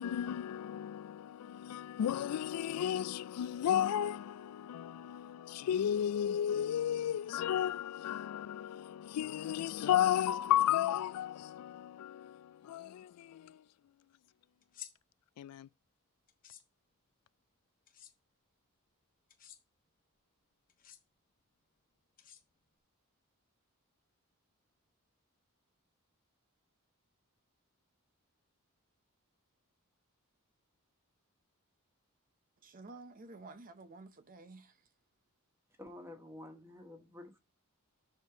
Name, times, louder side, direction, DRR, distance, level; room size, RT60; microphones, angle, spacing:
voice 1, 0.0-13.6 15.4-15.7, left 10 dB, 90° left, 0.3 m, -33 dB
sound 1, 14.6-14.9 16.3-16.6 17.9-18.1 19.3-19.6 20.7-21.0 22.2-22.8, left 10 dB, 40° left, 1.0 m, -52 dB
voice 2, 32.6-34.9, right 3 dB, 40° right, 0.7 m, -52 dB
voice 3, 35.8-37.4, left 1 dB, 10° right, 1.3 m, -50 dB
6.6 x 4.4 x 5.7 m
head